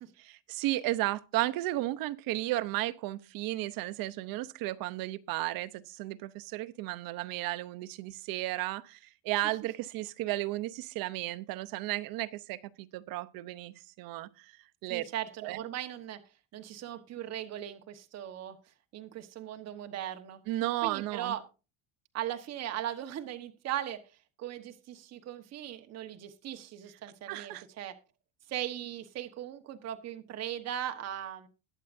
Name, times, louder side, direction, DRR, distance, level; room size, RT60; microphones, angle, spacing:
voice 1, 0.3-14.6 14.8-15.0 15.4-15.6 20.5-21.4 27.3-27.6, right 17 dB, 55° right, 0.8 m, -34 dB
voice 2, 14.9-16.2 16.5-20.4 20.8-21.4 22.1-27.9 28.5-31.5, right 11 dB, 35° right, 1.2 m, -39 dB
21.0 x 7.5 x 2.6 m
cardioid pair, 150°, 43 cm